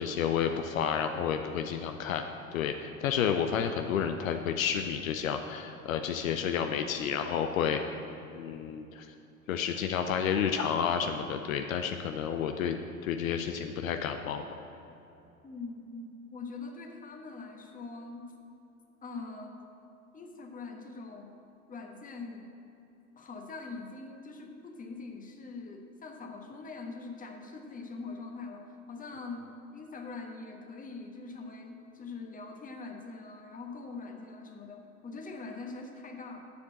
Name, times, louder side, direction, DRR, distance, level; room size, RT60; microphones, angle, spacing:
voice 1, 0.0-2.2 2.5-7.8 8.3-9.1 9.5-14.4, left 8 dB, 65° left, 6 dB, 0.7 m, -30 dB
voice 2, 15.4-18.2 19.0-19.7 20.1-21.4 21.7-22.5 23.2-36.4, left 3 dB, 20° left, 3 dB, 1.2 m, -43 dB
7.3 x 6.9 x 7.8 m, 2.8 s
figure-of-eight pair, 80°, 44 cm